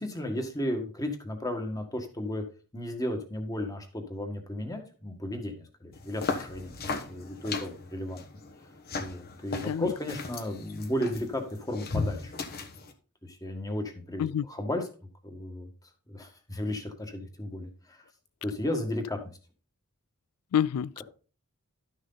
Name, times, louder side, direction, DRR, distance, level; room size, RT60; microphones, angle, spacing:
voice 1, 0.0-2.4 2.7-6.7 7.1-8.2 9.0-12.3 13.2-14.9 15.2-15.7 16.1-18.0 18.4-19.3, left 1 dB, 15° left, 1.6 m, -34 dB
sound 1, 5.9-12.9, left 3 dB, 45° left, 1.2 m, -37 dB
voice 2, 20.5-21.0, left 9 dB, 85° left, 0.3 m, -27 dB
12.0 x 6.4 x 4.0 m
head